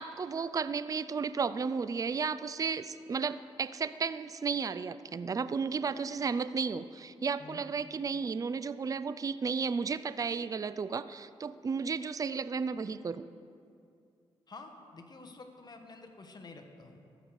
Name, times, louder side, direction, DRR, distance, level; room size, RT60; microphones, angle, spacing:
voice 1, 0.0-13.2, right 5 dB, 35° right, 14 dB, 0.4 m, -33 dB
voice 2, 14.5-17.0, left 3 dB, 40° left, 5 dB, 1.2 m, -49 dB
14.5 x 6.6 x 4.7 m, 2.4 s
cardioid pair, 65°, 11 cm